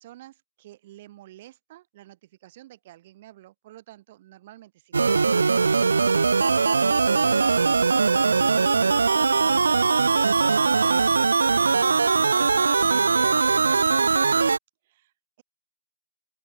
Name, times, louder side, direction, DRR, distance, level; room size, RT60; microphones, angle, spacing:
voice 1, 0.0-13.9 14.8-15.1, right 15 dB, 30° right, 3.2 m, -49 dB
sound 1, 4.9-14.6, right 4 dB, 85° right, 0.6 m, -20 dB
open air
hypercardioid pair, 160°, 0 cm